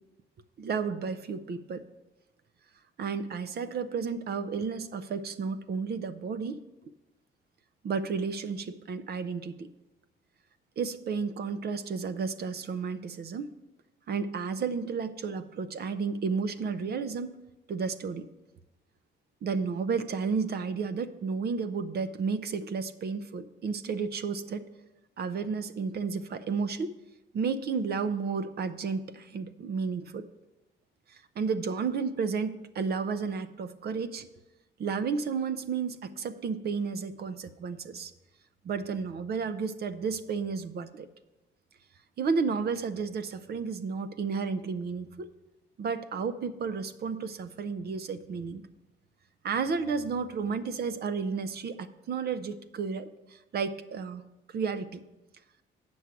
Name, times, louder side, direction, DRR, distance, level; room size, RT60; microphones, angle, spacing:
voice 1, 0.6-1.8 3.0-6.6 7.8-9.7 10.8-13.6 14.1-17.4 17.7-18.3 19.4-24.6 25.2-26.9 27.3-30.3 31.1-34.3 34.8-38.1 38.6-41.1 42.2-45.3 45.8-48.6 49.4-55.0, right 5 dB, 55° right, 12 dB, 0.6 m, -32 dB
8.2 x 6.3 x 5.8 m, 1.0 s
cardioid pair, 90°, 20 cm